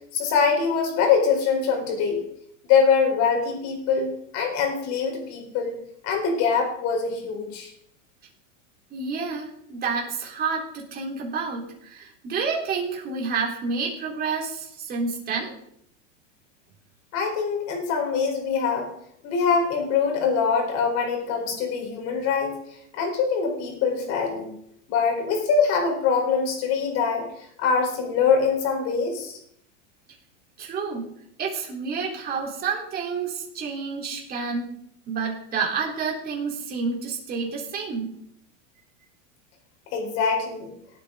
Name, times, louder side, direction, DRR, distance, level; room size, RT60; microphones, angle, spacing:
voice 1, 0.1-2.2 2.7-5.8 6.0-7.7 17.1-18.9 19.2-22.5 22.9-24.5 24.9-27.3 27.6-29.4 39.9-40.7, left 5 dB, 45° left, 2 dB, 4.3 m, -23 dB
voice 2, 8.9-15.5 30.6-31.0 31.4-34.7 35.1-38.1, right 5 dB, 25° right, -2 dB, 3.7 m, -29 dB
18.5 x 8.6 x 3.9 m, 0.72 s
supercardioid pair, 150°, 38 cm